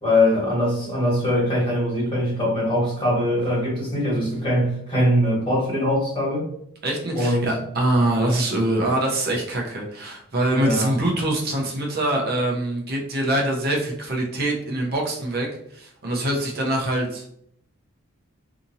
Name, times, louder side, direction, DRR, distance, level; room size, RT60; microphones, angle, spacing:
voice 1, 0.0-6.5 7.1-7.5 10.5-10.9, left 1 dB, 25° left, -7 dB, 1.4 m, -22 dB
voice 2, 6.8-17.2, right 1 dB, 45° right, -1 dB, 0.7 m, -24 dB
2.8 x 2.5 x 2.6 m, 0.70 s
head